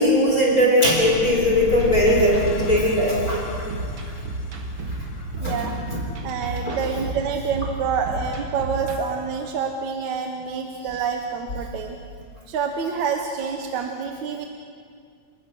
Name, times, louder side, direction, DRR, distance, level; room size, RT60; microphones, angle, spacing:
voice 1, 0.0-3.7 4.9-5.0 5.4-6.1 6.6-6.8 10.9-11.0, left 1 dB, 25° left, -2 dB, 4.0 m, -20 dB
sound 1, 0.9-5.9, left 1 dB, 60° left, 2.2 m, -33 dB
sound 2, 1.8-9.0, right 2 dB, 40° right, 2.3 m, -32 dB
voice 2, 5.4-5.8 6.2-12.0 12.5-14.5, right 6 dB, 65° right, 3 dB, 2.3 m, -27 dB
30.0 x 19.5 x 6.4 m, 2.2 s
omnidirectional pair, 3.9 m